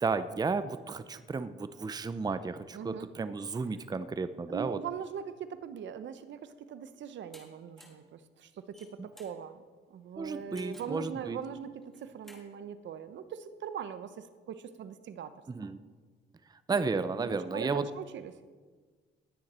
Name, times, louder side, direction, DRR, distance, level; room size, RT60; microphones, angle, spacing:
voice 1, 0.0-4.8 9.0-9.1 10.2-11.4 15.5-15.8 16.7-17.9, right 4 dB, 20° right, 13 dB, 0.6 m, -33 dB
voice 2, 2.7-3.1 4.5-9.6 9.9-15.3 15.6-15.7 17.2-18.3, right 8 dB, 70° right, 12 dB, 0.9 m, -41 dB
sound 1, 7.3-7.4 7.8-8.1 8.6-9.4 10.6-11.0 11.8-12.5, equal, ahead, 3.2 m, -55 dB
19.0 x 9.3 x 4.3 m, 1.4 s
cardioid pair, 90°, 20 cm